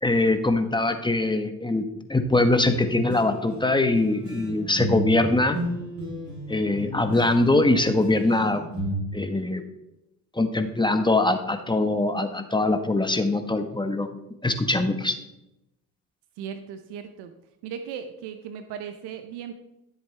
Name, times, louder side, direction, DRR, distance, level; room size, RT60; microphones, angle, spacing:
voice 1, 0.0-5.6 6.5-8.6 9.1-9.6 10.3-14.1 14.4-15.1, left 2 dB, 10° left, 7 dB, 1.2 m, -22 dB
Boogie Guitar loop, 2.6-8.9, equal, 45° right, 3.7 m, -34 dB
voice 2, 16.4-17.3 17.6-19.5, right 8 dB, 85° right, 8 dB, 0.9 m, -37 dB
13.5 x 7.6 x 3.4 m, 0.89 s
supercardioid pair, 75°, 39 cm